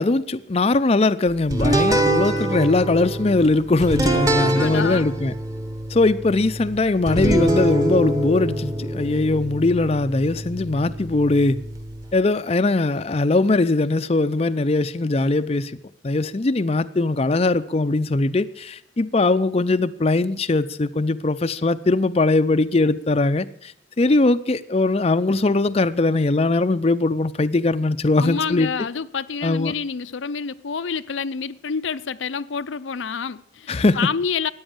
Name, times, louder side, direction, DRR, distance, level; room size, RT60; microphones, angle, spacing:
voice 1, 0.0-5.3 5.9-11.6 12.1-15.7 16.0-28.7 29.4-29.7 33.7-34.0, left 2 dB, 30° left, 0.5 m, -20 dB
sound 1, 1.5-12.1, right 1 dB, 20° right, 1.4 m, -25 dB
voice 2, 4.4-5.1 28.2-34.5, left 6 dB, 85° left, 0.6 m, -28 dB
14.0 x 9.6 x 8.9 m
head